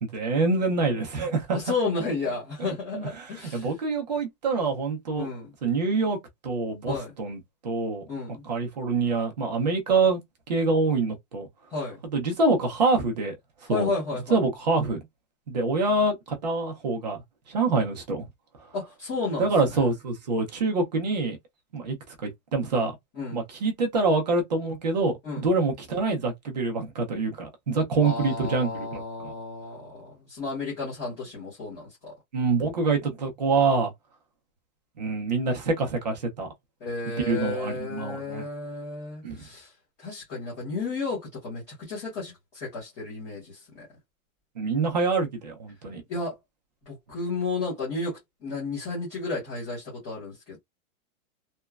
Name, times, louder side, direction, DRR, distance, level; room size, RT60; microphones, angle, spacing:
voice 1, 0.0-1.6 2.6-2.7 2.9-5.3 5.6-6.2 6.4-8.1 8.4-10.2 10.5-11.5 12.1-13.4 13.7-13.9 14.3-15.0 15.5-17.2 17.5-18.3 19.4-21.4 21.7-22.0 22.2-23.0 23.3-29.3 32.3-33.9 35.0-36.5 37.3-38.5 39.2-39.4 44.6-46.0, right 3 dB, 30° right, 0.4 m, -26 dB
voice 2, 1.5-3.7 5.2-5.5 6.8-7.1 8.1-8.4 11.7-12.0 13.7-14.4 18.7-19.8 23.2-23.4 25.2-25.4 28.0-32.1 36.8-39.7 40.0-43.9 46.1-46.3 46.9-50.6, left 3 dB, 15° left, 0.7 m, -32 dB
3.0 x 2.1 x 2.2 m
supercardioid pair, 175°, 44 cm